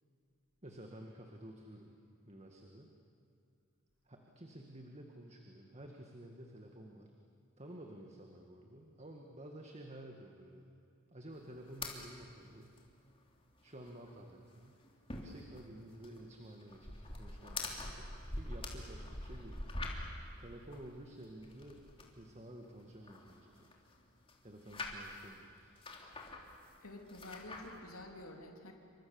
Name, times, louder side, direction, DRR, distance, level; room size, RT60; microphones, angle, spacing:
voice 1, 0.6-1.9 2.2-2.9 4.1-7.1 7.6-10.7 11.1-12.7 13.6-14.8 15.2-19.6 20.4-21.9 22.1-23.7 24.4-25.7, right 1 dB, 30° right, 2 dB, 1.9 m, -52 dB
sound 1, 11.7-12.0 12.3-12.4 12.6-12.8 13.2-13.3 13.6-14.2 14.5-20.2 20.7-22.1 22.6-24.0 24.3-25.3 25.7-26.7 27.1-27.8, left 2 dB, 25° left, 3.1 m, -45 dB
voice 2, 26.8-28.7, left 1 dB, 75° left, 2 dB, 3.3 m, -50 dB
28.5 x 25.5 x 7.2 m, 2.4 s
head